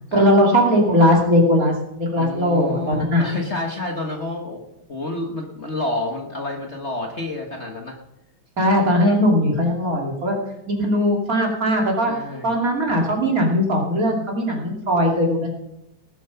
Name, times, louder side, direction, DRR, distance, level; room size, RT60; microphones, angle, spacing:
voice 1, 0.1-3.2 8.6-10.4 10.7-12.1 12.4-15.5, equal, 45° right, 0 dB, 3.0 m, -19 dB
voice 2, 2.2-4.6 4.9-8.0 12.1-12.5, left 2 dB, 35° left, 1 dB, 1.5 m, -29 dB
19.0 x 7.4 x 5.8 m, 0.86 s
omnidirectional pair, 2.2 m